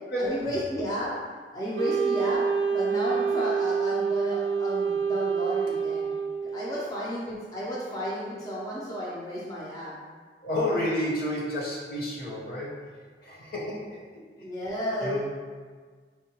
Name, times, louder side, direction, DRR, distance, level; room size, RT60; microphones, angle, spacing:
voice 1, 0.2-1.1 1.5-2.4 2.7-6.1 6.5-9.9 14.4-15.2, equal, 20° left, -7 dB, 0.5 m, -32 dB
Wind instrument woodwind instrument, 1.8-6.9, right 6 dB, 85° right, 0.4 m, -27 dB
voice 2, 10.4-12.9 13.2-14.0 15.0-15.2, left 1 dB, 60° left, -5 dB, 0.9 m, -30 dB
4.4 x 2.1 x 2.9 m, 1.5 s
head